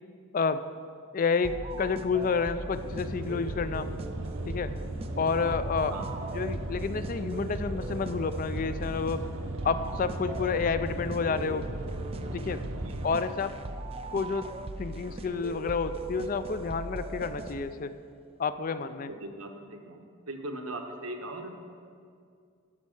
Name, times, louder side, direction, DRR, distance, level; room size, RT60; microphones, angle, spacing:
voice 1, 1.1-3.9 4.5-4.7 5.2-6.0 6.3-9.3 9.6-11.7 12.3-12.6 13.0-13.6 14.1-14.5 14.8-17.9 18.4-19.1, left 5 dB, 40° left, 12 dB, 0.3 m, -29 dB
sound 1, 1.4-17.9, right 2 dB, 25° right, 0.4 m, -39 dB
sound 2, 2.7-13.2, right 1 dB, 65° right, 0.8 m, -37 dB
voice 2, 18.8-20.0 20.3-21.6, right 1 dB, 85° right, 2 dB, 1.2 m, -39 dB
12.0 x 5.3 x 6.3 m, 2.3 s
head